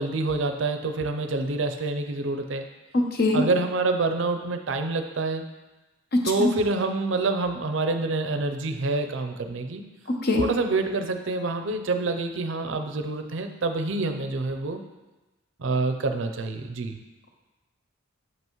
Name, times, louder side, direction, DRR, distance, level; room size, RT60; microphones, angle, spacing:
voice 1, 0.0-2.7 3.3-5.5 6.3-9.9 10.4-14.8 15.6-17.0, right 3 dB, 65° right, 6 dB, 0.5 m, -27 dB
voice 2, 2.9-3.4 6.1-6.5 10.2-10.4, left 2 dB, 50° left, 2 dB, 0.8 m, -22 dB
7.4 x 5.4 x 3.1 m, 1.1 s
head